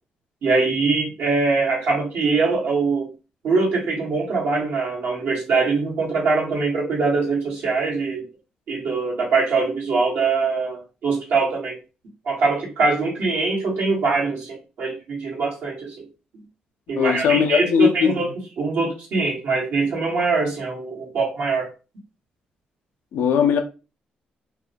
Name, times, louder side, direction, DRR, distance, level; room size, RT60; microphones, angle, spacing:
voice 1, 0.4-3.1 3.4-8.2 8.7-11.8 12.2-16.0 16.9-18.3 18.6-21.7, right 4 dB, 75° right, 1.2 m, -23 dB
voice 2, 17.0-18.2 23.1-23.6, left 7 dB, 75° left, 0.4 m, -19 dB
2.3 x 2.1 x 2.7 m
hypercardioid pair, 50°, 4 cm